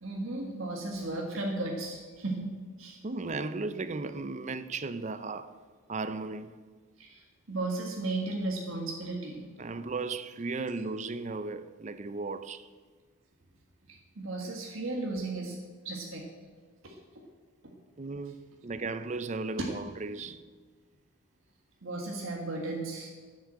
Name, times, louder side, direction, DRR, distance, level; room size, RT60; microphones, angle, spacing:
voice 1, 0.0-2.5 2.8-3.0 7.0-9.5 13.9-15.6 15.8-16.3 16.8-17.0 17.6-17.7 21.8-23.1, right 2 dB, 70° right, 1.6 m, -35 dB
voice 2, 3.0-5.5 5.9-6.5 9.6-12.7 18.0-20.4, right 3 dB, 35° right, 0.5 m, -36 dB
10.5 x 9.5 x 7.6 m
head